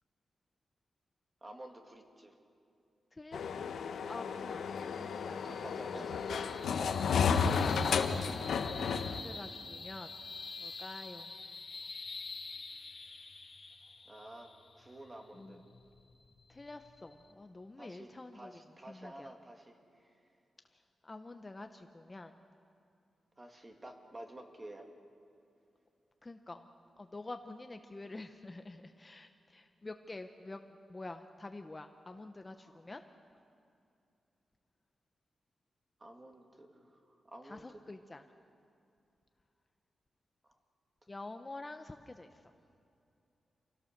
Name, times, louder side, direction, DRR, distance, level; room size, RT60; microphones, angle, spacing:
voice 1, 1.4-2.4 5.4-8.3 14.1-14.5 14.7-15.6 17.8-20.1 23.4-24.9 32.6-32.8 36.0-37.7, right 1 dB, 20° right, 3 dB, 2.0 m, -50 dB
voice 2, 3.1-6.2 8.9-10.1 10.6-11.3 15.3-15.6 16.5-18.5 18.8-19.3 20.7-22.3 26.2-26.7 27.0-30.6 30.9-33.0 37.4-38.2 41.1-42.4, left 2 dB, 20° left, 7 dB, 0.7 m, -48 dB
sound 1, 3.3-9.2, left 6 dB, 85° left, 1.0 m, -32 dB
sound 2, 4.7-17.3, left 4 dB, 40° left, 1.8 m, -47 dB
27.0 x 17.0 x 6.5 m, 2.6 s
wide cardioid pair, 140°, 0 cm